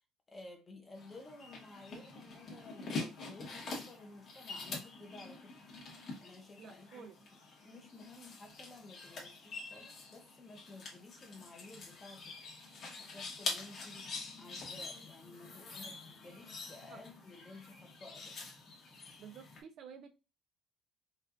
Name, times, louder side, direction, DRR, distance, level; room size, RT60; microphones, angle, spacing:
voice 1, 0.3-5.6 6.2-7.0 7.3-12.4 13.0-18.5, left 2 dB, 15° left, 0.7 m, -54 dB
sound 1, 0.9-19.6, left 3 dB, 40° left, 1.2 m, -46 dB
voice 2, 6.6-7.2 16.9-17.0 19.2-20.2, right 7 dB, 45° right, 0.4 m, -51 dB
4.4 x 2.4 x 2.4 m
cardioid pair, 175°, 0 cm